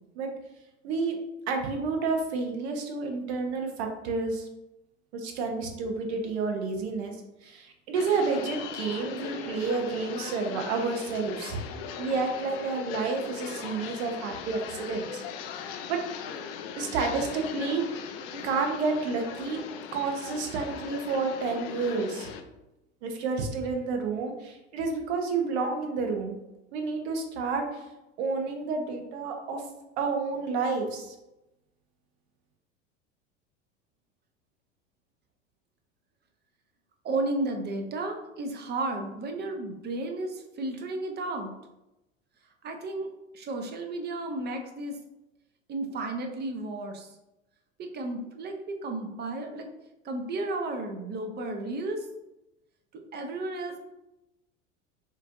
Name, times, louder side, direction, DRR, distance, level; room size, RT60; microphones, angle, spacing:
voice 1, 0.8-1.1 1.5-4.5 5.1-7.2 7.4-11.6 12.0-15.2 15.9-16.0 16.8-17.8 18.3-19.6 19.9-22.3 23.0-26.4 26.7-27.8 28.2-29.6 30.0-31.1, right 4 dB, 60° right, 3 dB, 1.0 m, -30 dB
sound 1, 7.9-22.4, left 7 dB, 50° left, 0.6 m, -39 dB
voice 2, 37.0-41.5 42.6-43.1 43.3-45.0 45.7-47.2 47.8-49.7 50.0-52.1 52.9-53.8, right 2 dB, 25° right, 4 dB, 0.7 m, -33 dB
6.5 x 2.5 x 2.5 m, 0.94 s
figure-of-eight pair, 75°, 38 cm